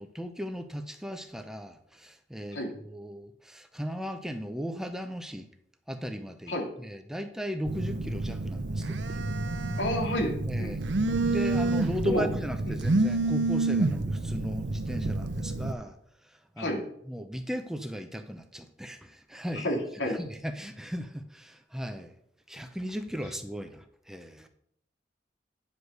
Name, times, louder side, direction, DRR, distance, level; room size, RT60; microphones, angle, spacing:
voice 1, 0.0-2.6 2.8-5.5 5.9-9.2 10.4-10.9 11.2-16.0 16.2-19.7 20.1-22.1 22.5-24.5, equal, 5° right, 7 dB, 0.6 m, -37 dB
Telephone, 7.7-15.7, right 2 dB, 75° right, 0.7 m, -29 dB
voice 2, 9.8-10.3 10.6-10.7 12.0-12.2 16.6-16.8 19.5-20.2, equal, 90° left, 1 dB, 2.3 m, -29 dB
9.6 x 5.0 x 6.5 m, 0.70 s
head